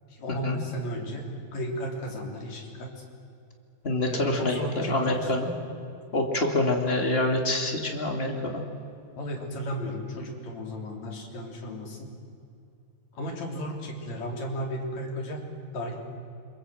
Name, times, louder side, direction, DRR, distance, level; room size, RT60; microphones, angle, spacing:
voice 1, 0.1-1.2 1.5-2.9 4.1-5.3 9.2-12.1 13.1-15.4 15.7-16.0, equal, 40° left, 0 dB, 4.6 m, -34 dB
voice 2, 3.8-5.5 6.1-8.6, left 1 dB, 25° left, 1 dB, 1.4 m, -26 dB
28.5 x 22.5 x 7.8 m, 2.6 s
omnidirectional pair, 4.9 m